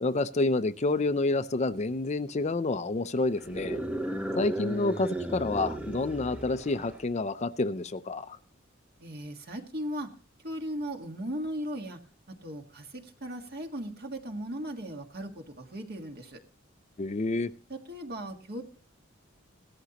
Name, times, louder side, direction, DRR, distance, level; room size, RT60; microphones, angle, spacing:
voice 1, 0.0-3.8 4.4-8.4 17.0-17.5, left 2 dB, 35° left, 0.5 m, -29 dB
sound 1, 3.4-7.1, right 1 dB, 5° right, 0.8 m, -35 dB
voice 2, 9.0-10.1 10.4-12.0 12.4-16.4 17.7-18.6, equal, 50° right, 1.7 m, -37 dB
17.0 x 13.0 x 3.0 m
head